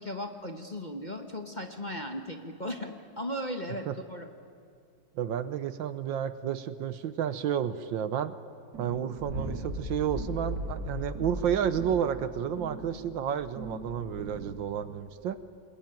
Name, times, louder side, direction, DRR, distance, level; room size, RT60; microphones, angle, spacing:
voice 1, 0.0-4.3, left 1 dB, 25° left, 4 dB, 1.1 m, -37 dB
voice 2, 5.2-8.3 8.8-15.4, right 9 dB, 70° right, 13 dB, 1.5 m, -31 dB
sound 1, 8.7-14.9, equal, 55° right, 4.7 m, -38 dB
28.0 x 21.0 x 9.1 m, 2.4 s
omnidirectional pair, 2.3 m